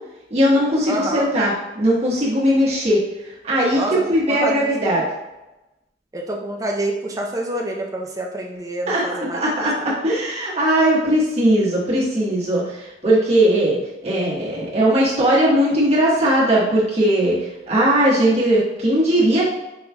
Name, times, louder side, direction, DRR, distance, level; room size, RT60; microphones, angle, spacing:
voice 1, 0.3-3.0 3.4-5.1 8.9-13.8 14.0-19.5, right 1 dB, 35° right, -7 dB, 1.4 m, -19 dB
voice 2, 0.9-1.3 3.7-4.7 6.1-9.4, right 1 dB, 20° right, -1 dB, 0.6 m, -27 dB
5.5 x 3.2 x 2.3 m, 1.0 s
head